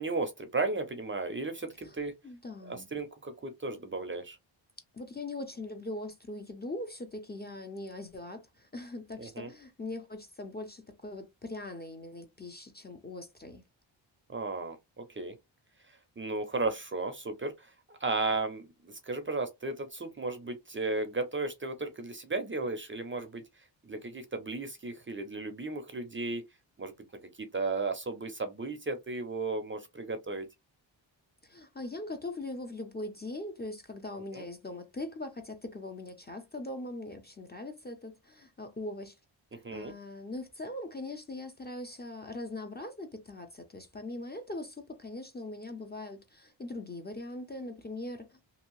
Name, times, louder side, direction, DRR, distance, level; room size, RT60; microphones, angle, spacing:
voice 1, 0.0-2.1 2.6-4.4 9.2-9.5 14.3-15.3 15.9-23.4 23.8-26.4 26.8-26.9 27.4-30.5 34.3-34.4 39.6-39.9, right 3 dB, 25° right, 0.5 m, -35 dB
voice 2, 2.2-2.9 4.9-13.6 31.4-39.2 39.5-48.4, left 2 dB, 20° left, 0.5 m, -41 dB
2.8 x 2.7 x 3.0 m
wide cardioid pair, 140°, 46 cm